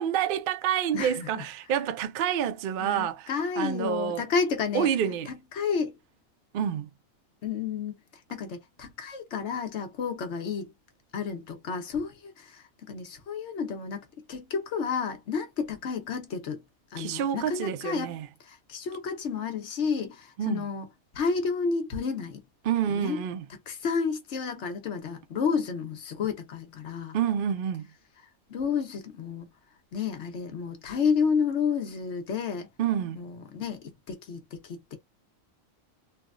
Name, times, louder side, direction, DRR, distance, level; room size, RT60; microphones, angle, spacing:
voice 1, 0.0-3.3 3.6-4.2 4.7-5.3 6.5-6.9 17.0-18.3 20.4-20.6 22.7-23.4 27.1-27.9 32.8-33.2, right 9 dB, 70° right, 0.5 m, -28 dB
voice 2, 0.9-1.4 2.8-4.9 5.3-5.9 7.4-8.0 8.3-10.7 11.1-16.6 16.9-18.1 18.4-20.9 21.1-22.4 22.9-23.2 23.7-27.2 28.5-29.5 29.9-32.7 33.1-35.0, left 6 dB, 60° left, 1.1 m, -31 dB
3.3 x 2.1 x 2.4 m
omnidirectional pair, 1.4 m